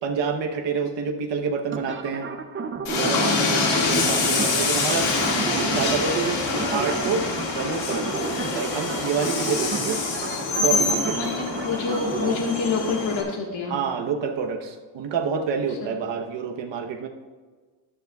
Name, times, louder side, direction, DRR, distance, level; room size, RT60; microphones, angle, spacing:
voice 1, 0.0-2.3 2.9-5.1 5.6-7.3 7.5-8.2 8.5-10.0 10.6-11.2 13.7-17.1, right 6 dB, 70° right, 3 dB, 1.0 m, -28 dB
sound 1, 1.7-12.4, right 4 dB, 25° right, 0.6 m, -32 dB
Train, 2.8-13.2, left 3 dB, 70° left, 2.1 m, -25 dB
voice 2, 3.1-3.6 10.6-10.8 11.1-13.8 15.7-16.0, left 4 dB, 90° left, 0 dB, 1.6 m, -28 dB
14.0 x 10.5 x 2.3 m, 1.4 s
wide cardioid pair, 160°, 45 cm